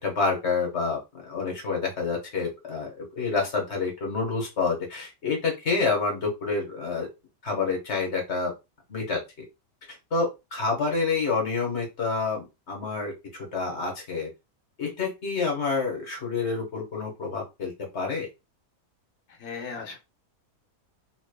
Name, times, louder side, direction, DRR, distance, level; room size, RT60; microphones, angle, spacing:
voice 1, 0.0-7.1 7.4-8.5 8.9-9.2 9.9-14.3 14.8-18.3, left 4 dB, 50° left, 0 dB, 1.5 m, -28 dB
voice 2, 19.3-20.0, left 5 dB, 80° left, 3 dB, 1.4 m, -37 dB
3.8 x 3.3 x 2.2 m, 0.24 s
omnidirectional pair, 1.6 m